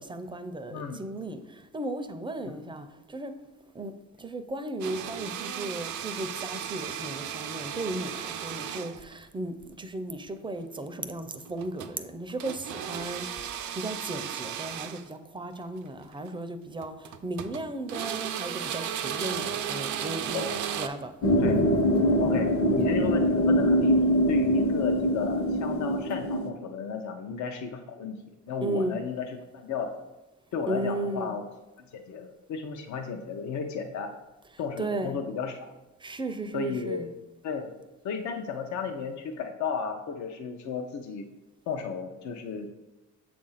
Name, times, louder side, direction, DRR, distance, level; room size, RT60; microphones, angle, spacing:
voice 1, 0.0-3.3 3.7-3.9 4.2-20.5 20.8-21.1 21.5-21.6 28.6-29.0 30.7-31.3 34.8-35.1 36.0-37.1, right 2 dB, 15° right, 9 dB, 0.5 m, -35 dB
sound 1, 4.8-9.2 11.5-12.0 12.4-15.1 16.1-16.3 16.8-17.6 17.9-20.9, right 9 dB, 75° right, 0.5 m, -35 dB
sound 2, 21.2-26.5, equal, 45° left, 0.9 m, -23 dB
voice 2, 22.2-28.2 28.5-29.3 29.5-29.9 30.5-31.4 31.9-34.1 34.6-35.7 36.5-37.0 37.4-37.7 38.0-41.3 41.7-42.7, left 6 dB, 70° left, 4 dB, 0.6 m, -33 dB
6.9 x 2.6 x 5.6 m, 1.0 s
cardioid pair, 90°, 30 cm